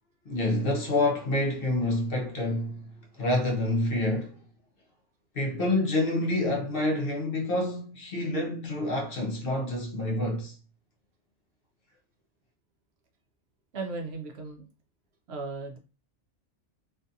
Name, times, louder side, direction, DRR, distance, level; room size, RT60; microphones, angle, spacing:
voice 1, 0.3-4.4 5.3-10.5, left 1 dB, 55° left, 0.7 m, -28 dB
voice 2, 13.7-14.7 15.3-15.8, right 3 dB, 65° right, 0.7 m, -36 dB
2.5 x 2.3 x 2.6 m
omnidirectional pair, 1.3 m